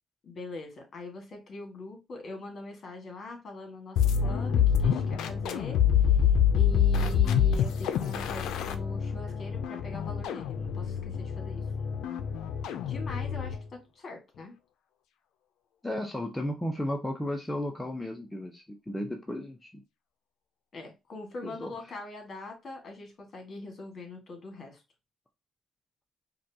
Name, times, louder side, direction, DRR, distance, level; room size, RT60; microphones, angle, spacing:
voice 1, 0.2-5.8 6.0-6.2 6.5-11.6 12.8-14.5 20.7-24.8, left 2 dB, 50° left, 1.6 m, -42 dB
sound 1, 4.0-13.7, left 8 dB, 85° left, 0.4 m, -26 dB
voice 2, 15.8-19.7 21.4-21.7, left 1 dB, 10° left, 0.6 m, -34 dB
4.9 x 2.3 x 2.7 m
cardioid pair, 90°, 0 cm